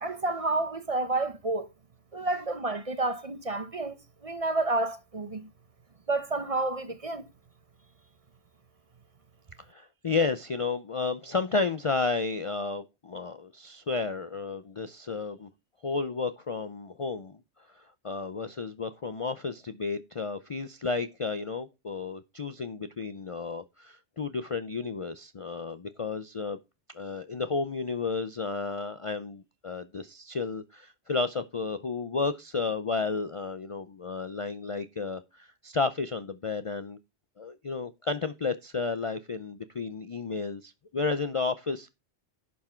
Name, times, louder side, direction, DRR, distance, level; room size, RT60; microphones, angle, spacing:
voice 1, 0.0-1.7 2.1-4.0 4.2-5.5 6.1-7.3, right 2 dB, 35° right, 0.8 m, -30 dB
voice 2, 9.7-15.5 15.8-17.4 18.0-26.6 26.9-37.0 37.4-41.9, left 4 dB, 45° left, 0.4 m, -32 dB
11.0 x 5.9 x 4.4 m
omnidirectional pair, 1.2 m